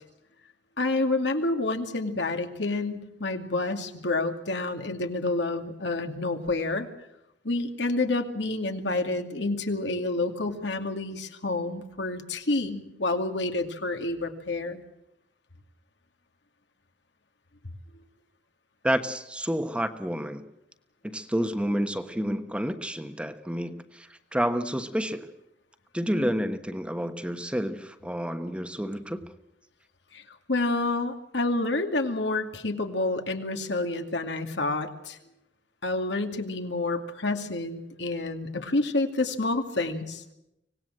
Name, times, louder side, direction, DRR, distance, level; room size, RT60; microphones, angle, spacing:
voice 1, 0.8-6.9 7.4-14.8 30.1-35.2 35.8-40.2, left 2 dB, 75° left, 6 dB, 2.4 m, -29 dB
voice 2, 18.8-20.4 21.0-25.3 25.9-29.2, equal, 5° right, 8 dB, 1.2 m, -29 dB
25.0 x 19.0 x 7.6 m, 0.85 s
head